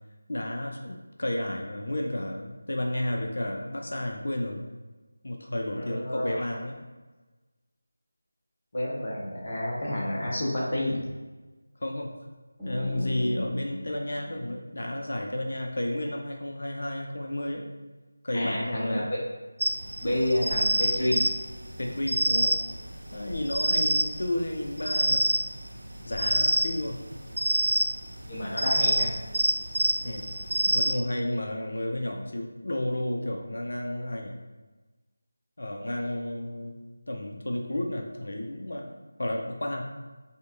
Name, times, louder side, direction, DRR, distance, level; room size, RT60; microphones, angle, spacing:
voice 1, 0.3-4.6 5.2-6.7 11.8-12.1 12.6-17.7 18.2-19.1 21.8-22.5 23.1-25.2 26.0-27.0 30.0-30.2 30.6-34.3 35.6-36.7 37.1-38.9 39.2-39.9, left 1 dB, 65° left, 1 dB, 0.5 m, -32 dB
voice 2, 5.7-6.5 8.7-11.0 18.3-19.2 20.0-21.2 28.2-29.1, left 1 dB, 45° left, -5 dB, 1.0 m, -29 dB
sound 1, 12.6-15.4, left 1 dB, ahead, 0.8 m, -38 dB
sound 2, 19.6-30.9, right 1 dB, 75° right, 0.4 m, -27 dB
5.1 x 2.2 x 2.5 m, 1.2 s
figure-of-eight pair, 165°, 0 cm